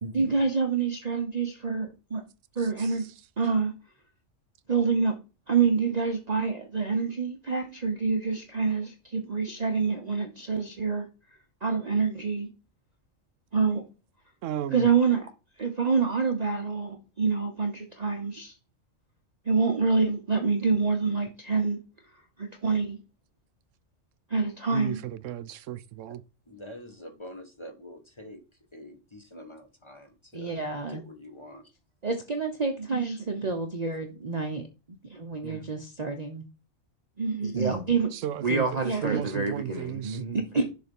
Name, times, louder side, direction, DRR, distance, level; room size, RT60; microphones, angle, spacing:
voice 1, 0.0-2.2 2.6-3.1 3.4-3.7 4.7-5.2 5.5-11.1 11.6-12.5 13.5-13.8 14.7-15.2 15.6-18.5 19.5-21.8 22.4-23.0 24.3-25.0 30.3-31.0 32.0-34.6 35.1-36.4 37.2-38.1 38.4-40.6, right 4 dB, 35° right, 0.9 m, -27 dB
voice 2, 2.6-3.1 14.4-14.9 24.7-26.2 38.1-40.2, right 10 dB, 75° right, 1.0 m, -35 dB
voice 3, 26.5-28.4 28.7-31.6, left 1 dB, 25° left, 1.0 m, -45 dB
6.9 x 3.9 x 5.2 m
omnidirectional pair, 1.3 m